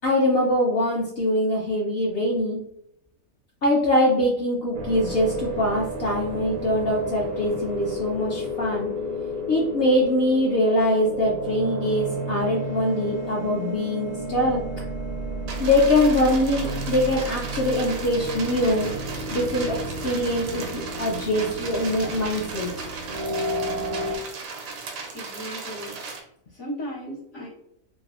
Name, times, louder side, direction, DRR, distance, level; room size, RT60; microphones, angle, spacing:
voice 1, 0.0-2.6 3.6-8.9 9.5-14.6 15.6-18.9 19.3-22.7, left 1 dB, 60° left, -2 dB, 0.6 m, -23 dB
sound 1, 4.7-24.2, equal, 65° right, 0.5 m, -32 dB
sound 2, 15.5-26.2, right 4 dB, 85° right, 1.0 m, -36 dB
voice 2, 25.1-25.9 26.5-27.5, equal, 75° left, -12 dB, 1.4 m, -36 dB
3.2 x 2.0 x 2.3 m, 0.74 s
omnidirectional pair, 1.4 m